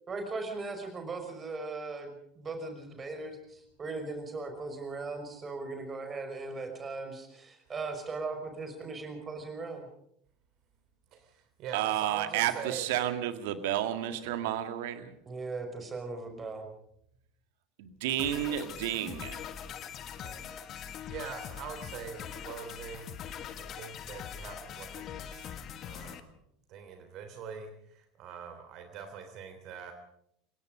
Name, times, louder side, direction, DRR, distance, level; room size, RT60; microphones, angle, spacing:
voice 1, 0.1-9.9 15.3-16.7, right 3 dB, 25° right, 6 dB, 5.5 m, -38 dB
voice 2, 11.1-13.0 14.2-14.4 20.2-20.4 20.7-23.2 23.7-25.5 25.8-26.4 26.7-29.9, right 7 dB, 45° right, 6 dB, 3.2 m, -44 dB
voice 3, 11.7-15.1 17.8-19.4, right 12 dB, 60° right, 10 dB, 2.0 m, -31 dB
sound 1, 18.2-26.2, left 9 dB, 40° left, 1.6 m, -42 dB
29.0 x 17.5 x 5.2 m, 0.71 s
figure-of-eight pair, 75°, 0 cm